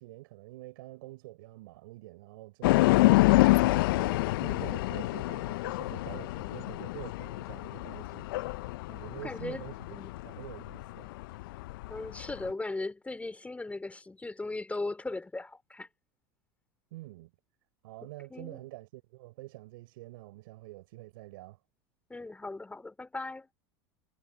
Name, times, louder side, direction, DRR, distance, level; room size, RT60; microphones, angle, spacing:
voice 1, 0.0-8.3 8.9-10.0 10.2-11.1 16.9-17.3 17.8-21.6, right 19 dB, 80° right, 5.6 m, -47 dB
sound 1, 2.6-12.5, left 20 dB, 80° left, 0.4 m, -27 dB
voice 2, 9.2-9.6 9.9-10.1 11.9-15.9 18.3-18.6 22.1-23.5, left 2 dB, 10° left, 2.8 m, -38 dB
hypercardioid pair, 95°, 12 cm